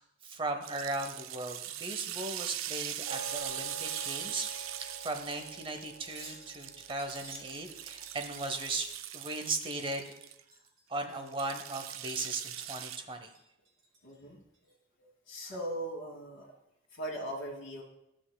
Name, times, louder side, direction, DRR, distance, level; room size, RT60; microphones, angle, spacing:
voice 1, 0.0-8.9 9.1-10.1 10.9-13.3, right 2 dB, 25° right, 5 dB, 0.7 m, -37 dB
sound 1, 0.6-10.4 11.3-13.0, right 12 dB, 90° right, 0.4 m, -41 dB
sound 2, 3.0-8.6, right 1 dB, 45° right, 1.9 m, -48 dB
Wind chime, 3.8-10.8 11.1-11.9 12.3-12.8 13.2-14.2 14.5-14.7, right 3 dB, 70° right, 2.4 m, -53 dB
voice 2, 14.0-14.4 15.0-16.5 16.9-17.8, right 1 dB, 75° left, -5 dB, 1.5 m, -39 dB
12.0 x 7.5 x 2.2 m, 0.84 s
head